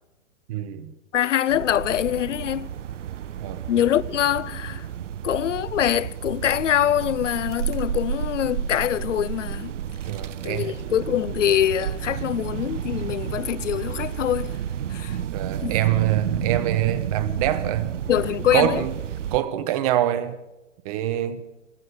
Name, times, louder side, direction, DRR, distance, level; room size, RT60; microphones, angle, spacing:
voice 1, 0.5-0.9 3.4-3.6 10.1-10.8 15.3-17.9 18.5-18.9 19.3-20.4 20.8-21.4, right 12 dB, 30° right, 1.0 m, -25 dB
voice 2, 1.1-2.7 3.7-4.9 5.2-9.7 10.4-14.5 14.9-15.2 15.6-15.8 18.1-18.8, left 11 dB, 85° left, 0.7 m, -24 dB
sound 1, 1.5-19.4, right 9 dB, 80° right, 0.8 m, -31 dB
15.0 x 14.5 x 6.4 m
hypercardioid pair, 155°, 36 cm